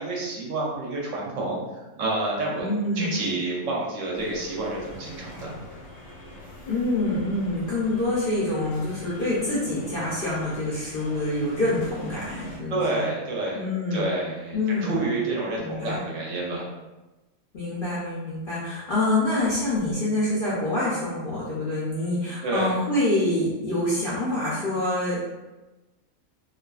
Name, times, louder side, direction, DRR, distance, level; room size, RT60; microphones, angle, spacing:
voice 1, 0.0-1.6 2.0-2.7 3.0-5.6 12.7-13.6 13.9-16.6 22.4-22.7, right 2 dB, 70° right, -3 dB, 0.9 m, -28 dB
voice 2, 2.6-3.1 6.6-13.0 13.5-14.1 14.5-15.1 15.6-16.0 17.5-25.2, left 2 dB, 55° left, -8 dB, 0.6 m, -26 dB
sound 1, 4.1-12.6, left 1 dB, 85° left, 1.1 m, -44 dB
2.4 x 2.4 x 2.3 m, 1.1 s
omnidirectional pair, 1.5 m